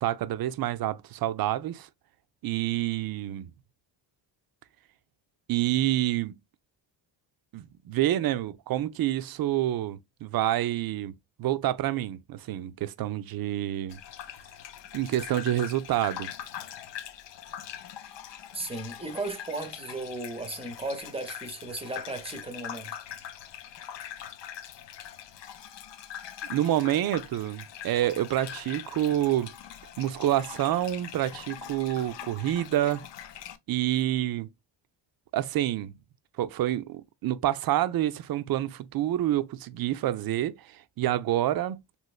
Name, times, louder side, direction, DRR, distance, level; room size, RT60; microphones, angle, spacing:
voice 1, 0.0-1.9 2.4-3.5 5.5-6.4 7.5-11.1 11.4-14.0 14.9-16.3 26.5-29.5 30.0-33.1 33.7-34.5 35.3-35.9 36.4-41.8, right 13 dB, 50° right, 0.4 m, -28 dB
Gurgling / Bathtub (filling or washing), 13.9-33.6, left 10 dB, 65° left, 0.6 m, -42 dB
voice 2, 18.5-23.0, right 2 dB, 15° right, 0.7 m, -35 dB
3.1 x 3.1 x 2.3 m
cardioid pair, 85°, 46 cm